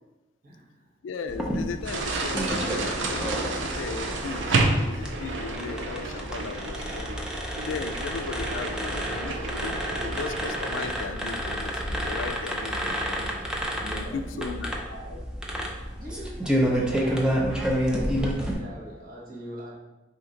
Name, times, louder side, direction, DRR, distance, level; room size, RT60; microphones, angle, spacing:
voice 1, 0.4-0.9 1.4-1.5 13.0-13.3 13.8-15.2 15.7-19.7, right 1 dB, 50° right, -5 dB, 1.2 m, -43 dB
voice 2, 1.0-4.6 4.8-7.3 7.6-13.5 13.8-14.8, left 5 dB, 85° left, 9 dB, 0.3 m, -37 dB
sound 1, 1.3-18.5, equal, 5° right, 0.5 m, -30 dB
sound 2, 1.8-10.9, right 3 dB, 75° right, 0.5 m, -30 dB
4.4 x 2.8 x 3.8 m, 1.1 s
head